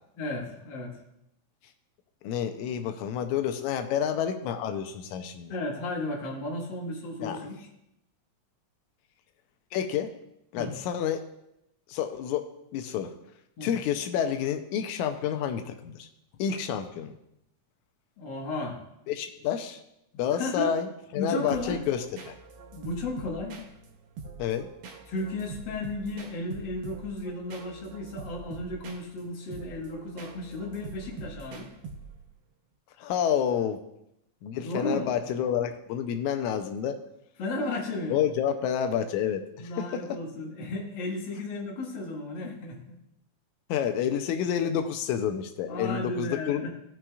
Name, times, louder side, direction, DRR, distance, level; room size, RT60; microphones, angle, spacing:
voice 1, 0.2-1.0 5.5-7.7 10.6-10.7 13.6-13.7 18.2-18.8 20.3-20.8 21.2-21.8 22.7-23.6 25.1-31.7 34.6-35.1 37.4-38.2 39.6-42.8 45.7-46.7, left 2 dB, 45° left, -1 dB, 1.9 m, -34 dB
voice 2, 2.2-5.6 7.2-7.4 9.7-10.1 10.5-11.2 11.9-12.5 12.7-13.1 13.6-16.1 16.4-17.1 19.1-19.8 20.1-22.4 24.4-24.7 33.0-33.8 34.4-37.0 38.1-40.2 43.7-46.7, left 9 dB, 90° left, 7 dB, 2.0 m, -29 dB
sound 1, 21.5-32.4, right 4 dB, 65° right, 1.3 m, -44 dB
17.5 x 5.9 x 2.4 m, 0.81 s
omnidirectional pair, 3.3 m